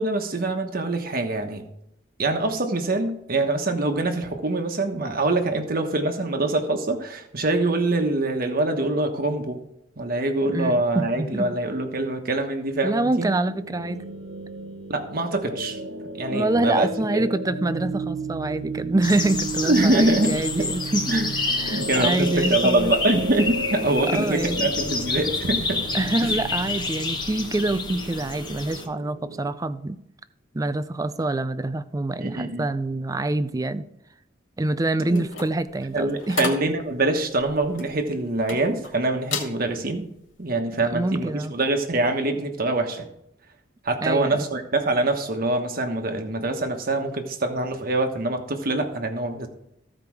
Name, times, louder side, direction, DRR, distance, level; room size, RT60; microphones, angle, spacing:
voice 1, 0.0-1.6 2.2-9.6 10.0-13.3 14.9-15.8 16.1-17.2 19.6-20.7 21.1-21.3 21.7-25.8 26.2-26.3 32.2-32.7 35.0-35.3 35.9-40.0 40.4-43.1 43.8-49.5, right 2 dB, 50° right, 5 dB, 1.2 m, -24 dB
voice 2, 10.5-11.5 12.8-14.0 16.3-21.1 21.6-22.9 24.1-24.7 25.9-30.0 30.5-33.9 34.6-36.5 40.8-41.5 44.0-44.4, right 2 dB, 20° right, 13 dB, 0.4 m, -26 dB
sound 1, 13.5-29.5, right 2 dB, 90° right, 1.0 m, -34 dB
sound 2, 19.0-28.9, left 4 dB, 25° left, 1.0 m, -29 dB
sound 3, 35.1-38.9 39.2-39.6 40.0-40.3, left 5 dB, 80° left, 2.1 m, -33 dB
14.5 x 5.0 x 4.7 m, 0.79 s
head